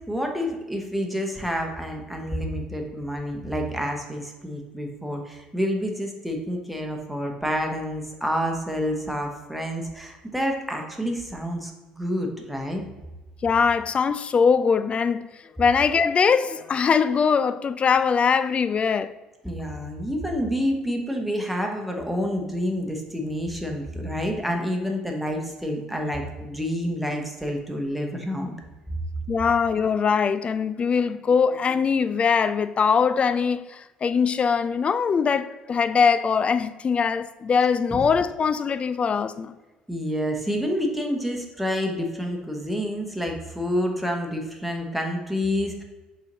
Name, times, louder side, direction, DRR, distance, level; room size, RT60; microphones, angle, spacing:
voice 1, 0.1-12.8 19.4-28.5 28.9-29.0 37.9-38.0 39.9-45.8, equal, ahead, 1.1 m, -28 dB
voice 2, 13.4-15.3 15.6-19.1 29.3-39.5, left 6 dB, 30° left, 0.3 m, -22 dB
5.6 x 4.3 x 3.9 m
figure-of-eight pair, 55°, 4 cm